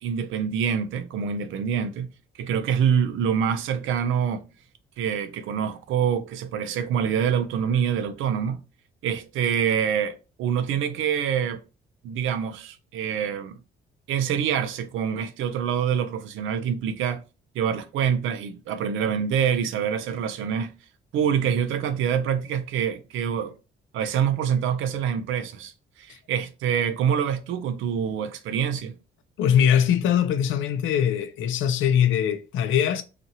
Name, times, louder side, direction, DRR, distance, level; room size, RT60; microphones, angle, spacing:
voice 1, 0.0-2.1 2.4-4.4 5.0-8.6 9.0-11.6 12.0-13.6 14.1-17.2 17.5-20.7 21.1-23.6 23.9-25.7 26.0-29.0, right 8 dB, 80° right, 0.5 m, -26 dB
voice 2, 29.4-33.0, left 9 dB, 80° left, 0.5 m, -22 dB
2.8 x 2.4 x 2.7 m
cardioid pair, 90°, 20 cm